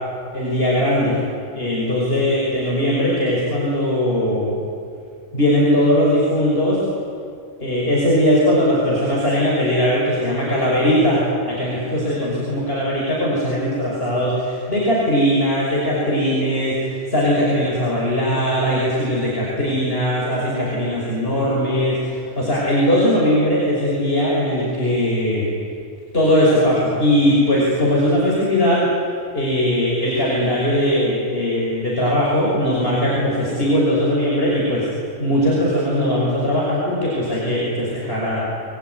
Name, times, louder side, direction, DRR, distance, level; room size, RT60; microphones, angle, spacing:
voice 1, 0.3-1.2 1.5-4.6 5.3-6.8 7.6-25.5 26.1-28.8 29.3-34.9 35.2-38.4, equal, 50° left, -6 dB, 6.3 m, -19 dB
28.5 x 22.0 x 9.7 m, 2.3 s
omnidirectional pair, 1.3 m